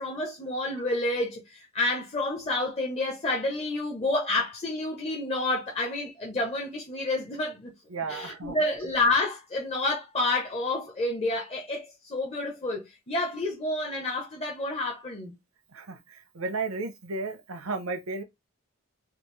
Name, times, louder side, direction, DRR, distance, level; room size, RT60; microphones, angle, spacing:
voice 1, 0.0-7.7 8.1-15.3, left 2 dB, 30° left, 0.6 m, -29 dB
voice 2, 7.9-8.6 15.7-18.2, right 3 dB, 80° right, 0.7 m, -34 dB
3.4 x 2.4 x 3.1 m
head